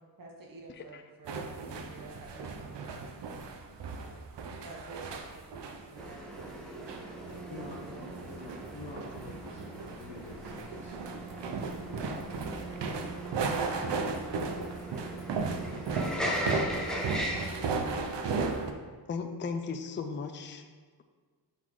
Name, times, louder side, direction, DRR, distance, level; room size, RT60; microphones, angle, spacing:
voice 1, 0.0-3.2 3.9-4.2 4.6-7.1 7.5-8.4 17.2-17.7 18.1-18.4, right 3 dB, 50° right, -1 dB, 0.9 m, -50 dB
sound 1, 1.2-18.7, right 4 dB, 80° right, 0.7 m, -36 dB
sound 2, 6.0-17.5, equal, ahead, 0.7 m, -39 dB
voice 2, 7.5-13.3 13.9-16.3, left 3 dB, 80° left, -2 dB, 0.9 m, -50 dB
voice 3, 19.1-20.7, left 5 dB, 30° left, 7 dB, 0.4 m, -36 dB
7.4 x 4.1 x 3.7 m, 1.5 s
wide cardioid pair, 140°, 42 cm